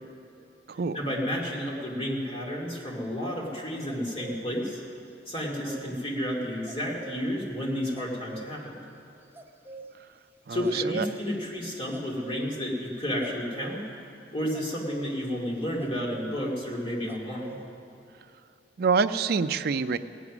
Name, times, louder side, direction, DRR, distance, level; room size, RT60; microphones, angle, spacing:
voice 1, 0.9-4.8 5.3-8.8 10.5-13.8 14.3-17.6, equal, 30° left, -2 dB, 2.5 m, -31 dB
sound 1, 3.9-4.4 5.3-5.9 6.7-7.2 7.9-8.5 9.2-9.9 10.6-11.5 11.9-12.5 13.2-13.9 14.2-16.3 17.1-17.7, right 3 dB, 10° right, 0.7 m, -45 dB
voice 2, 10.5-11.1 18.8-20.0, right 5 dB, 60° right, 10 dB, 0.4 m, -26 dB
17.5 x 9.4 x 6.1 m, 2.7 s
head